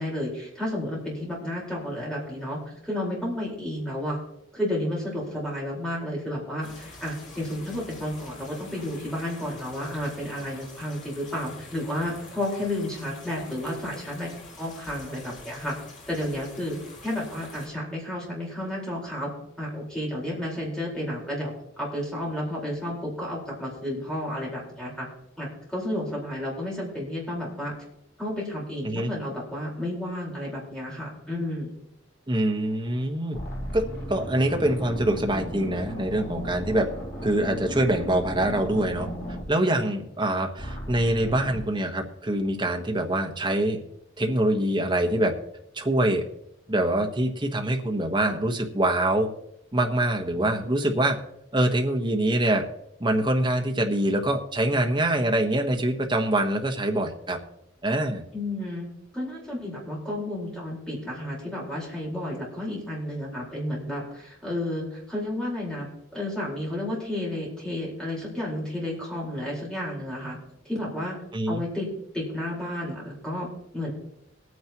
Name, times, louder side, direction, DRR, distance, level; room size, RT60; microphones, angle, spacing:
voice 1, 0.0-4.2 4.5-14.3 14.6-15.8 16.1-16.8 17.0-19.3 19.6-25.1 25.4-27.7 28.2-31.8 58.3-58.9 59.1-65.9 66.1-70.4 70.6-71.2 71.5-71.9 72.1-73.5 73.7-73.9, left 1 dB, 5° left, -5 dB, 4.4 m, -32 dB
sound 1, 6.6-17.7, left 2 dB, 40° left, 2.5 m, -46 dB
voice 2, 32.3-33.4 33.7-36.9 37.2-39.1 39.5-43.8 44.2-45.3 45.7-46.2 46.7-49.3 49.7-51.2 51.5-52.7 53.0-57.4 57.8-58.2 71.3-71.6, right 1 dB, 25° right, 2 dB, 1.2 m, -24 dB
sound 2, 32.7-32.9 33.3-40.2 40.6-41.7, equal, 55° left, 3.1 m, -35 dB
21.5 x 9.5 x 3.0 m, 0.79 s
head